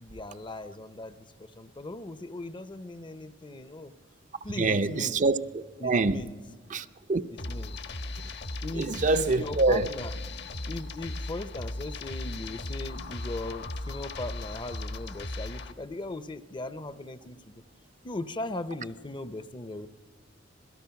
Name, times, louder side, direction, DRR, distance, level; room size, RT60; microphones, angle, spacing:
voice 1, 0.0-3.9 4.4-5.2 5.8-6.4 7.5-7.8 8.6-10.1 10.7-17.6 18.0-19.9, left 2 dB, 25° left, 0.7 m, -38 dB
voice 2, 4.6-6.2 6.7-7.2 8.8-9.9, right 3 dB, 40° right, 0.6 m, -25 dB
sound 1, 7.4-15.7, left 2 dB, 60° left, 1.3 m, -37 dB
26.5 x 17.5 x 5.8 m
head